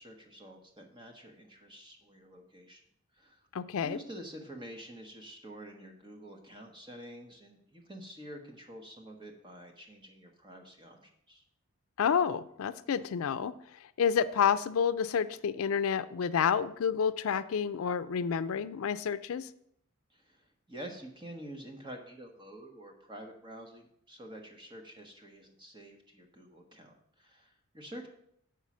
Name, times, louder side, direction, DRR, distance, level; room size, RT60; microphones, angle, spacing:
voice 1, 0.0-2.8 3.1-3.4 3.8-11.4 20.1-28.1, right 1 dB, 20° right, 3 dB, 1.2 m, -48 dB
voice 2, 3.5-4.0 12.0-13.5 14.0-19.5, left 7 dB, 80° left, 12 dB, 0.4 m, -29 dB
7.2 x 5.7 x 6.1 m, 0.71 s
head